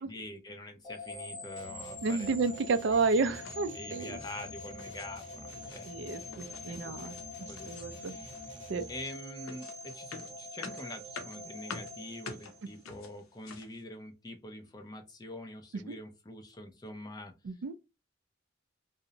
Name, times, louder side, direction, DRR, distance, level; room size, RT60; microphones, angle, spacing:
voice 1, 0.1-2.3 3.7-6.3 6.7-7.1 7.5-8.4 8.9-17.6, left 1 dB, 20° left, 0.4 m, -45 dB
sound 1, 0.8-13.0, left 1 dB, ahead, 1.0 m, -45 dB
sound 2, 1.6-9.1, left 1 dB, 60° left, 0.8 m, -51 dB
voice 2, 2.0-4.2 5.9-7.2 7.7-8.2 8.7-8.8 15.9-16.0 17.4-17.7, right 4 dB, 60° right, 0.3 m, -31 dB
sound 3, 3.3-3.6 4.0-4.3 4.7-5.1 5.4-5.8 6.3-7.3 7.6-8.0 8.3-13.8, left 5 dB, 85° left, 0.5 m, -48 dB
2.5 x 2.0 x 2.7 m
head